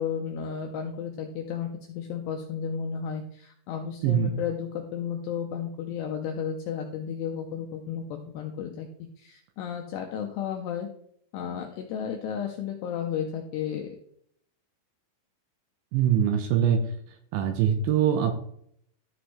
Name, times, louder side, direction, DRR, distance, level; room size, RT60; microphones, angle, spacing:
voice 1, 0.0-8.9 9.2-10.9 11.3-13.9, left 7 dB, 90° left, 3 dB, 2.4 m, -33 dB
voice 2, 4.0-4.4 15.9-16.8 17.3-18.4, right 9 dB, 85° right, 6 dB, 2.8 m, -23 dB
13.0 x 6.2 x 3.2 m, 0.69 s
omnidirectional pair, 5.8 m